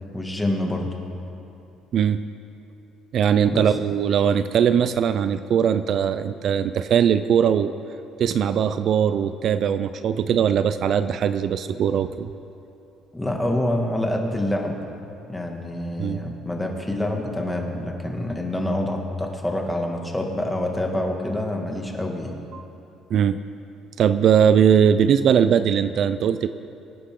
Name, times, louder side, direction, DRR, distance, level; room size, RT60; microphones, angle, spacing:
voice 1, 0.1-0.9 3.5-3.6 13.1-14.8 15.3-22.4, left 1 dB, 10° left, 1 dB, 2.1 m, -26 dB
voice 2, 3.1-7.7 8.2-12.3 16.0-16.2 22.5-22.7 23.1-23.4 24.0-26.5, right 8 dB, 55° right, 12 dB, 0.5 m, -20 dB
24.0 x 9.7 x 3.8 m, 2.9 s
cardioid pair, 95°, 0 cm